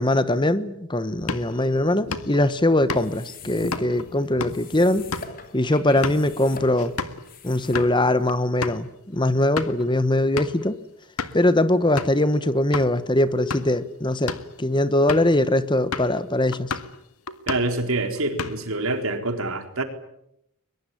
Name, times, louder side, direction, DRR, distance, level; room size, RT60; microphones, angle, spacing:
voice 1, 0.0-5.1 5.5-6.9 7.4-10.8 11.3-16.7, left 1 dB, 20° left, 14 dB, 1.1 m, -21 dB
sound 1, 1.2-7.2 7.6-7.9 8.3-8.4 8.6-8.8 9.3-9.8 10.4-10.7 11.2-11.5 12.0-12.2 12.7-12.9 13.4-13.8 14.1-14.5 15.1-15.4 15.9-16.2 16.5-17.0 17.3-17.8 18.1-18.8, left 4 dB, 80° left, 1.9 m, -32 dB
sound 2, 2.9-8.3, left 4 dB, 40° left, 3.2 m, -43 dB
voice 2, 17.5-19.8, right 2 dB, 75° right, 6 dB, 4.0 m, -26 dB
22.5 x 22.0 x 10.0 m, 0.79 s
head